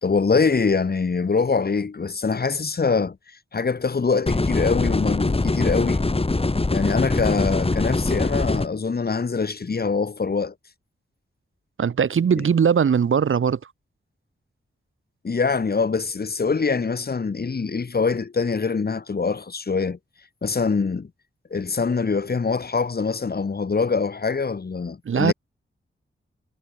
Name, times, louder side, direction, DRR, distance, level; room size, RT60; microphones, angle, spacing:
voice 1, 0.0-3.2 3.5-6.1 6.7-10.5 15.2-20.0 20.4-21.1 21.5-25.3, left 4 dB, 45° left, 3.5 m, -24 dB
sound 1, 4.3-8.7, left 2 dB, 25° left, 7.4 m, -22 dB
voice 2, 11.8-13.6 25.1-25.3, right 7 dB, 70° right, 1.6 m, -20 dB
wide cardioid pair, 105°, 21 cm